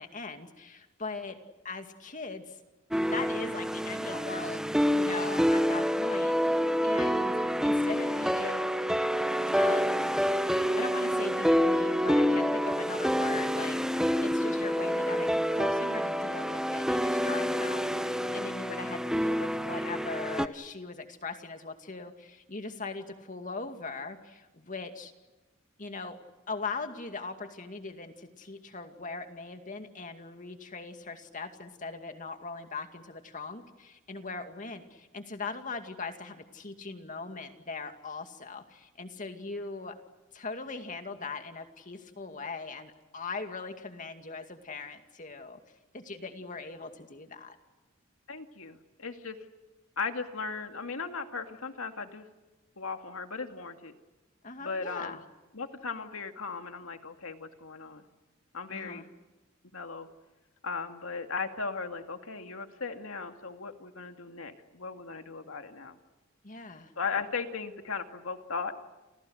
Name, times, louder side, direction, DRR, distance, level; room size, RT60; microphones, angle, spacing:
voice 1, 0.0-1.4 1.6-2.6 3.1-7.3 7.6-8.6 9.5-10.1 10.8-13.8 14.2-25.1 25.8-26.2 26.5-40.0 40.3-45.6 45.9-47.6 54.4-55.2 58.7-59.0 66.4-66.9, left 4 dB, 40° left, 6 dB, 2.3 m, -40 dB
sound 1, 2.9-20.5, equal, 5° right, 0.8 m, -27 dB
voice 2, 48.3-49.4 50.0-52.3 52.8-53.9 54.6-55.2 55.5-58.0 58.5-59.1 59.7-60.1 60.6-66.0 67.0-68.8, left 4 dB, 80° left, 6 dB, 2.3 m, -37 dB
29.5 x 29.0 x 6.5 m, 1.1 s
head